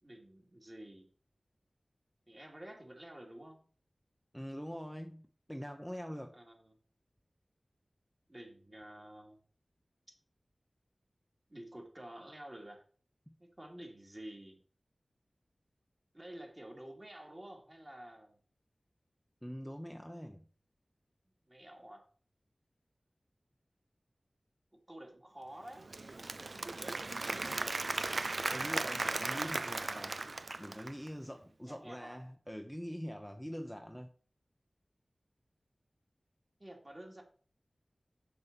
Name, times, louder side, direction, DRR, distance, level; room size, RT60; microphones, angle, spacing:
voice 1, 0.0-1.1 2.3-3.6 6.3-6.7 8.3-9.4 11.5-12.8 13.4-14.6 16.1-18.4 21.5-22.0 24.9-25.9 27.1-28.1 31.7-32.2 36.6-37.2, right 1 dB, 25° right, 2.8 m, -50 dB
voice 2, 4.3-6.4 13.3-13.4 19.4-20.4 28.5-30.2 30.6-34.1, equal, ahead, 0.9 m, -44 dB
Applause / Crowd, 25.7-31.1, right 3 dB, 60° right, 0.6 m, -37 dB
7.0 x 5.8 x 6.9 m
wide cardioid pair, 60°, 0 cm